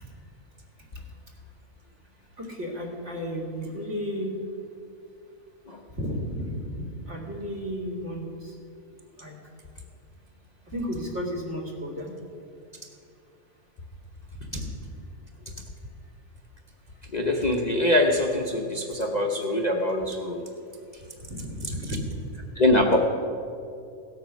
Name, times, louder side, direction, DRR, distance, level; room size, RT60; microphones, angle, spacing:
voice 1, 2.4-4.3 5.9-8.5 9.2-9.3 10.7-12.1 14.5-14.6 21.3-22.1, equal, 50° right, 0 dB, 2.5 m, -33 dB
voice 2, 17.1-20.5 21.9-22.0 22.5-23.0, left 1 dB, 35° left, 1 dB, 0.8 m, -23 dB
16.5 x 8.5 x 6.2 m, 2.5 s
omnidirectional pair, 1.5 m